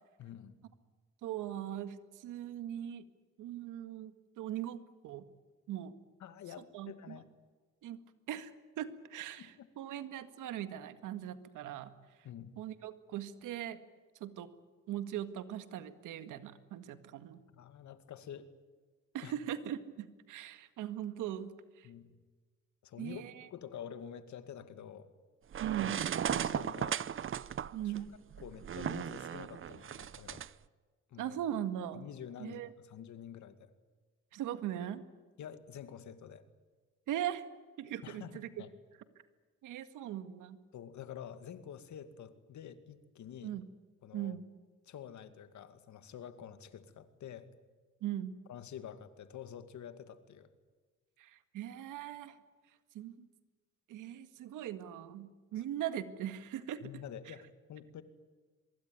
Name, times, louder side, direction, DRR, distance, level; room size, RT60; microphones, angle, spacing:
voice 1, 0.2-0.6 6.2-7.3 9.4-9.7 12.2-12.6 17.5-18.5 19.2-19.3 21.8-22.2 22.8-23.2 23.5-25.1 26.3-27.0 27.8-27.9 28.4-30.5 31.1-31.4 31.9-33.7 35.4-36.4 38.0-38.3 38.6-38.7 40.7-43.5 44.0-44.4 44.9-47.5 48.5-50.5 55.5-55.6 56.8-58.0, left 9 dB, 70° left, 10 dB, 2.3 m, -48 dB
voice 2, 1.2-3.0 3.4-5.3 5.7-5.9 6.7-7.2 7.8-8.0 8.3-11.9 12.6-13.8 14.2-14.5 14.9-17.4 19.1-21.9 23.0-23.5 25.6-26.0 27.7-28.1 31.2-32.0 32.4-32.7 34.3-35.0 37.1-37.5 37.8-38.6 39.6-40.6 43.4-43.6 44.1-44.5 48.0-48.3 51.2-52.4 52.9-53.3 53.9-56.9 57.3-57.4, right 11 dB, 90° right, 10 dB, 1.9 m, -40 dB
sound 1, 25.5-30.5, right 9 dB, 45° right, 0.7 m, -36 dB
24.0 x 22.5 x 9.4 m, 1.4 s
cardioid pair, 90°, 30 cm